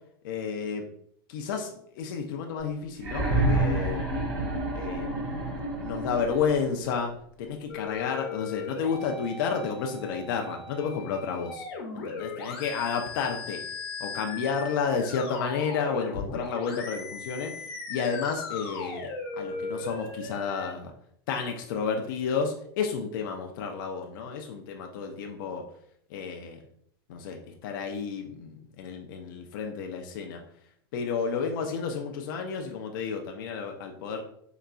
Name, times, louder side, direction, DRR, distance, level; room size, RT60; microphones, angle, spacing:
voice 1, 0.2-0.9 1.3-4.0 4.8-5.5 5.8-7.1 7.4-11.6 11.9-13.6 14.0-17.5 17.9-20.9 21.3-25.6 26.1-26.6 27.1-30.4 30.9-34.2, left 6 dB, 55° left, 3 dB, 0.4 m, -31 dB
sound 1, 3.0-6.8 8.0-8.1, right 2 dB, 60° right, 1.4 m, -28 dB
sound 2, 7.7-20.7, left 4 dB, 75° left, 0.9 m, -38 dB
3.8 x 2.2 x 2.3 m, 0.66 s
supercardioid pair, 155°, 13 cm